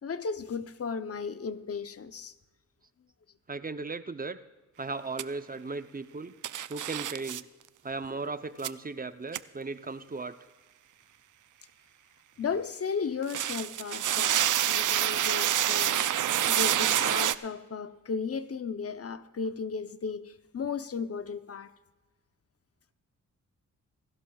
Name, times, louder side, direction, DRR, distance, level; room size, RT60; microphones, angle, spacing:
voice 1, 0.0-2.3 8.0-8.3 12.4-16.0 16.5-21.7, left 5 dB, 45° left, 0.7 m, -35 dB
voice 2, 3.5-4.4 4.8-6.3 6.7-7.5 7.8-10.4, right 3 dB, 25° right, 0.7 m, -36 dB
sound 1, 5.2-5.3 6.4-7.4 8.6-8.7 9.3-9.4 13.2-17.3, right 11 dB, 70° right, 0.5 m, -27 dB
26.5 x 12.0 x 2.4 m
cardioid pair, 70°, 32 cm